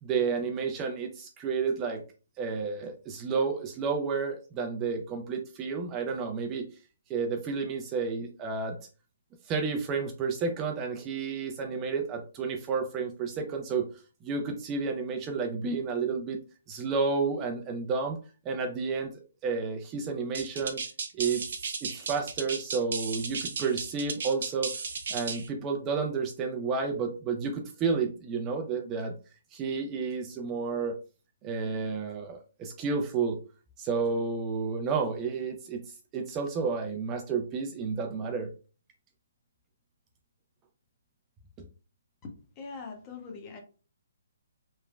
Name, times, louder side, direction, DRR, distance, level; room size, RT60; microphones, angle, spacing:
voice 1, 0.0-2.0 2.4-6.7 7.1-8.8 9.4-13.9 14.2-16.4 16.7-18.2 18.4-20.8 21.1-24.7 25.1-29.2 29.5-30.9 31.4-33.4 33.8-38.5, right 5 dB, 20° right, 3 dB, 0.4 m, -31 dB
sound 1, 20.3-25.5, right 5 dB, 65° right, 0.6 m, -35 dB
voice 2, 42.2-43.6, left 4 dB, 25° left, 2 dB, 0.7 m, -42 dB
3.1 x 2.0 x 2.4 m, 0.36 s
hypercardioid pair, 145°, 0 cm